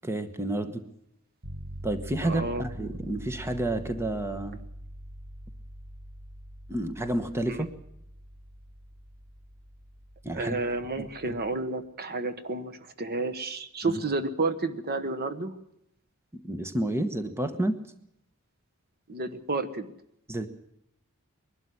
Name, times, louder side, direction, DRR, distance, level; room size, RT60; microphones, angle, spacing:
voice 1, 0.0-0.8 1.8-4.6 6.7-7.7 10.2-10.6 11.0-11.1 13.8-14.0 16.3-17.8 20.3-20.5, right 1 dB, 10° right, 9 dB, 1.1 m, -30 dB
sound 1, 1.4-11.6, right 1 dB, 65° right, 4.6 m, -44 dB
voice 2, 2.2-2.6 7.5-7.7 10.3-15.5 19.1-19.9, right 3 dB, 45° right, 11 dB, 1.2 m, -31 dB
21.5 x 12.5 x 9.8 m, 0.77 s
head